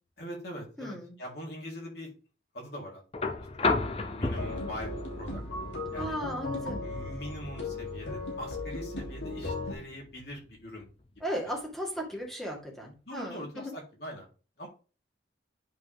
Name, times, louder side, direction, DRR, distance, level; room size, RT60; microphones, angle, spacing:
voice 1, 0.2-2.1 2.5-3.7 4.1-6.1 6.8-10.8 11.4-11.5 13.0-14.3 14.6-14.7, equal, 60° left, -1 dB, 3.6 m, -43 dB
voice 2, 0.8-1.1 6.0-6.9 11.2-13.7, equal, ahead, -1 dB, 2.2 m, -36 dB
sound 1, 3.1-11.2 12.6-12.7, left 3 dB, 30° left, 0.6 m, -35 dB
sound 2, 4.3-9.7, left 2 dB, 85° left, 3.0 m, -37 dB
10.0 x 5.3 x 3.5 m, 0.36 s
head